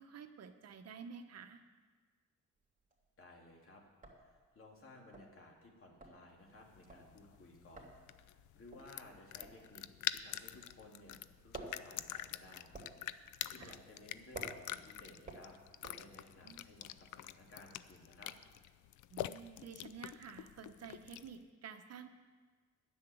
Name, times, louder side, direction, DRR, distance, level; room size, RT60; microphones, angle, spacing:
voice 1, 0.0-1.6 13.6-13.8 16.4-16.6 19.1-22.1, right 6 dB, 55° right, 7 dB, 0.9 m, -51 dB
sound 1, 2.6-3.2 3.5-3.6 3.9-10.9 11.2-16.5, right 3 dB, 25° right, 2.8 m, -53 dB
voice 2, 3.2-3.8 4.2-11.2 11.4-12.7 13.5-15.5 15.8-18.3, left 2 dB, 45° left, 0 dB, 2.8 m, -58 dB
sound 2, 6.6-21.4, left 13 dB, 80° left, 0.5 m, -46 dB
10.5 x 7.2 x 9.2 m, 1.4 s
cardioid pair, 90°, 30 cm